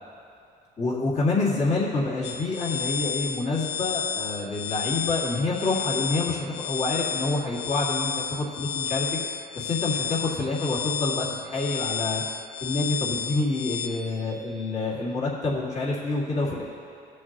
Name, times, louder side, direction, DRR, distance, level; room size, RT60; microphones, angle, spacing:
voice 1, 0.8-9.1 9.6-12.2 12.6-16.6, left 3 dB, 40° left, -5 dB, 2.2 m, -27 dB
sound 1, 2.2-13.9, left 7 dB, 90° left, 0.7 m, -31 dB
18.5 x 6.4 x 3.0 m, 2.5 s
cardioid pair, 110°, 17 cm